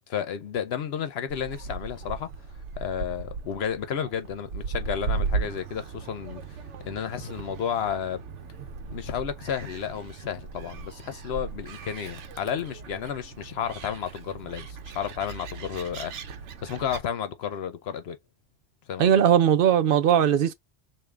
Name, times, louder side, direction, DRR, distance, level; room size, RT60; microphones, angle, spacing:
voice 1, 0.1-2.3 2.8-8.2 8.9-16.1 16.6-18.2 18.9-19.1, left 8 dB, 65° left, 0.8 m, -32 dB
Gull seagull, 1.3-17.0, right 5 dB, 85° right, 1.0 m, -37 dB
voice 2, 19.0-20.5, right 9 dB, 60° right, 0.7 m, -19 dB
3.6 x 2.6 x 3.2 m
omnidirectional pair, 1.2 m